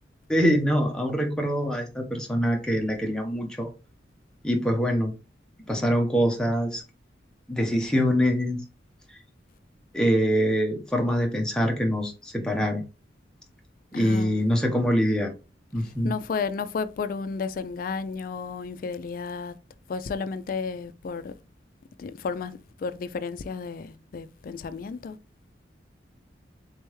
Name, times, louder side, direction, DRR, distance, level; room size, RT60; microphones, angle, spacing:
voice 1, 0.3-3.7 4.4-5.1 5.7-6.8 7.5-8.6 9.9-12.8 13.9-15.3 15.7-16.1, equal, 5° left, 0.7 m, -24 dB
voice 2, 13.9-14.5 15.8-19.5 19.9-21.3 22.0-25.2, left 5 dB, 50° left, 0.3 m, -33 dB
3.5 x 3.3 x 3.1 m
head